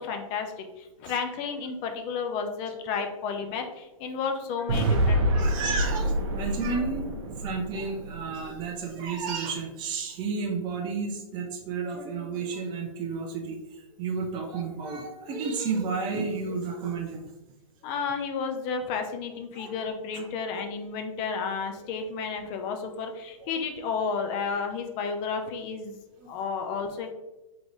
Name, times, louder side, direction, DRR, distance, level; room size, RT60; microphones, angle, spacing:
voice 1, 0.0-5.5 17.8-26.0 26.3-27.1, left 5 dB, 30° left, 5 dB, 0.6 m, -32 dB
sound 1, 4.7-8.8, right 1 dB, 50° right, 0.9 m, -27 dB
voice 2, 5.3-7.1 7.4-17.3 19.5-19.7 20.1-20.3 23.4-23.5 26.2-26.3, right 4 dB, 25° right, 1 dB, 0.6 m, -32 dB
3.8 x 3.8 x 3.0 m, 1.0 s
hypercardioid pair, 130°, 18 cm